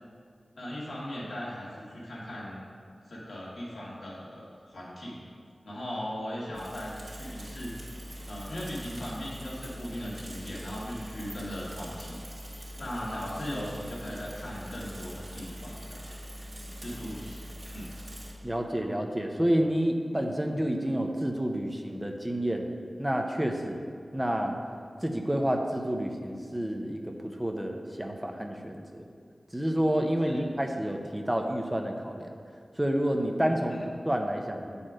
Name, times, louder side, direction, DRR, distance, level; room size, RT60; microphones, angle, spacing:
voice 1, 0.6-2.6 3.1-5.2 5.6-7.7 8.3-12.2 12.8-16.0 16.8-17.4 17.7-17.9 30.2-30.4 33.7-33.8, equal, 85° left, -6 dB, 1.7 m, -38 dB
Bicycle / Mechanisms, 6.5-18.3, equal, 50° right, 1.6 m, -43 dB
voice 2, 18.4-22.7 23.0-23.8 24.1-24.6 25.0-29.0 29.5-32.4 32.8-34.8, equal, 15° right, 3 dB, 0.7 m, -29 dB
7.6 x 4.3 x 4.9 m, 2.1 s
wide cardioid pair, 50°, 0 cm